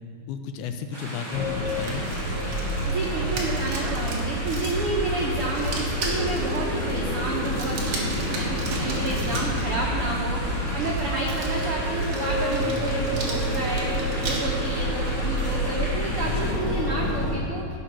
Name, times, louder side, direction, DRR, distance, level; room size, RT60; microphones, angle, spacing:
voice 1, 0.3-2.0 3.4-3.5 9.3-9.4 10.7-11.0 16.2-16.6, left 7 dB, 80° left, 7 dB, 2.6 m, -33 dB
sound 1, 0.9-16.5, equal, 5° left, 3.2 m, -35 dB
sound 2, 1.3-17.4, equal, 45° left, 2.3 m, -28 dB
sound 3, 1.6-9.6 10.7-14.4, right 3 dB, 55° right, 2.8 m, -37 dB
voice 2, 2.9-13.9 14.2-17.6, right 3 dB, 85° right, -2 dB, 1.2 m, -30 dB
17.0 x 6.0 x 6.2 m, 2.3 s
omnidirectional pair, 4.3 m